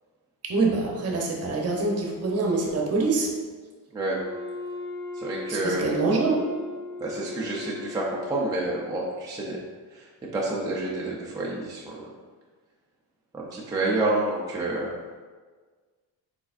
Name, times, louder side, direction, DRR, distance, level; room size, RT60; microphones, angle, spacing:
voice 1, 0.4-3.3 5.5-6.4, right 3 dB, 40° right, 0 dB, 0.8 m, -25 dB
Wind instrument woodwind instrument, 4.1-8.9, left 2 dB, 50° left, 0.7 m, -38 dB
voice 2, 5.1-5.9 7.0-9.6 9.9-10.1 10.3-12.1 13.3-14.9, right 2 dB, 10° right, -4 dB, 0.4 m, -29 dB
4.6 x 4.2 x 2.5 m, 1.5 s
cardioid pair, 150°, 39 cm